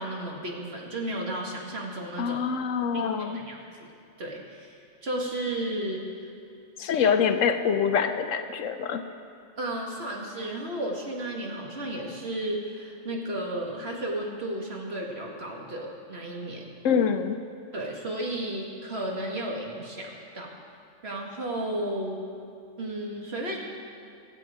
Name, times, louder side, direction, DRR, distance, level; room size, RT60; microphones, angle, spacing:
voice 1, 0.0-2.4 2.9-3.9 4.2-6.0 9.6-16.7 17.7-20.5 21.0-22.2 22.8-23.6, right 1 dB, 50° right, -1 dB, 2.1 m, -33 dB
voice 2, 2.2-3.4 6.8-9.0 16.8-17.4, left 7 dB, 70° left, 9 dB, 1.0 m, -25 dB
23.5 x 7.8 x 5.0 m, 2.5 s
omnidirectional pair, 1.4 m